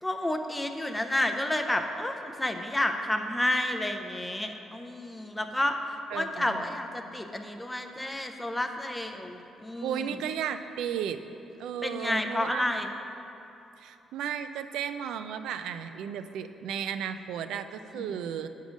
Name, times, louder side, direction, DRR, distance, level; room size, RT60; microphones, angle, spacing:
voice 1, 0.0-10.1 11.8-12.9 17.9-18.1, left 1 dB, 10° left, 6 dB, 0.4 m, -30 dB
voice 2, 6.1-6.7 9.8-11.2 11.6-12.6 13.8-18.5, right 8 dB, 90° right, 10 dB, 0.3 m, -34 dB
8.3 x 3.7 x 6.2 m, 2.9 s
cardioid pair, 150°, 0 cm